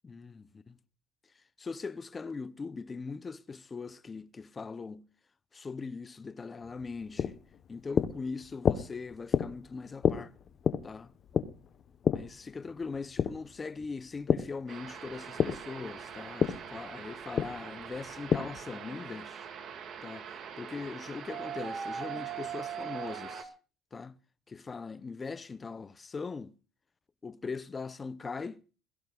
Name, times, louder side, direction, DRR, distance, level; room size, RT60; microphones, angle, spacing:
voice 1, 0.0-0.8 1.6-5.0 5.5-7.4 7.7-10.3 10.8-11.1 12.1-19.5 20.0-20.3 20.6-23.5 23.9-24.2 24.5-26.5 27.2-28.6, left 4 dB, 20° left, 0.7 m, -40 dB
sound 1, 6.6-14.6 14.9-18.7, left 8 dB, 35° left, 1.0 m, -31 dB
sound 2, 14.7-23.4, right 8 dB, 45° right, 2.0 m, -42 dB
22.5 x 16.0 x 2.4 m
cardioid pair, 155°, 0 cm